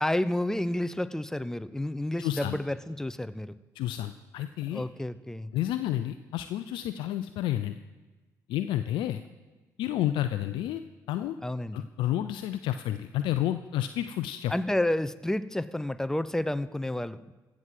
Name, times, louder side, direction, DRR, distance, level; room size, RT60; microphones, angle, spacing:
voice 1, 0.0-3.6 4.7-5.5 11.4-11.9 14.5-17.3, left 1 dB, 5° left, 14 dB, 0.7 m, -30 dB
voice 2, 2.2-2.6 3.8-4.8 5.5-7.8 8.5-9.2 9.8-10.8 11.1-11.4 11.7-14.5, left 12 dB, 65° left, 10 dB, 0.5 m, -30 dB
15.0 x 6.2 x 7.5 m, 1.2 s
hypercardioid pair, 45°, 9 cm